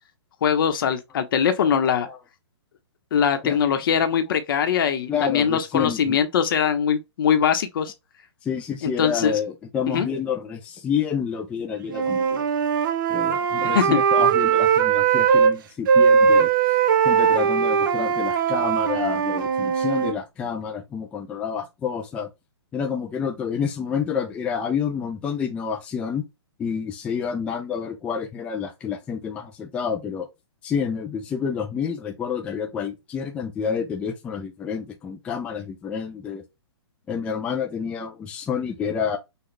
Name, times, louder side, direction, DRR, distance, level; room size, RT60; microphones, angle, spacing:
voice 1, 0.4-2.1 3.1-7.9 8.8-9.4 9.9-10.1 13.7-14.0, left 8 dB, 50° left, 1.0 m, -22 dB
voice 2, 5.1-6.2 8.4-12.5 13.1-16.5 17.0-22.3 22.7-26.2 26.6-30.3 30.6-36.4 37.1-39.2, left 7 dB, 10° left, 0.4 m, -29 dB
Wind instrument woodwind instrument, 11.9-15.5 15.9-20.1, right 7 dB, 45° right, 0.7 m, -20 dB
6.0 x 2.4 x 3.3 m
hypercardioid pair, 155°, 15 cm